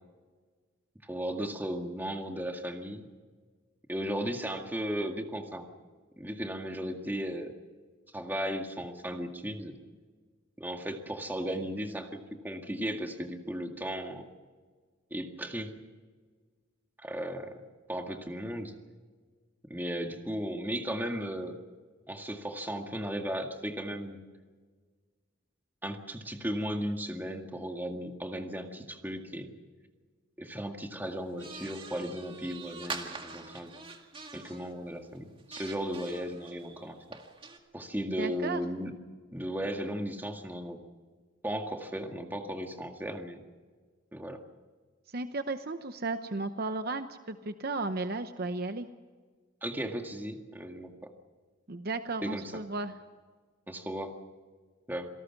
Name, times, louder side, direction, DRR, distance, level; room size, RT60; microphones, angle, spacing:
voice 1, 1.0-3.1 3.9-5.7 6.2-7.5 8.1-9.7 10.6-14.3 15.1-15.7 17.0-17.6 17.9-18.7 19.7-21.6 22.1-24.2 25.8-29.5 30.4-33.7 34.3-37.0 37.7-38.9 39.3-40.8 41.4-43.4 44.1-44.4 49.6-51.1 52.2-52.6 53.7-54.1 54.9-55.1, equal, 10° right, 4 dB, 1.9 m, -36 dB
sound 1, 31.4-34.7 35.2-37.6, right 4 dB, 25° right, 2.0 m, -44 dB
voice 2, 38.2-38.6 45.1-48.9 51.7-53.0, right 3 dB, 50° right, 9 dB, 0.8 m, -34 dB
27.0 x 18.5 x 6.0 m, 1.5 s
head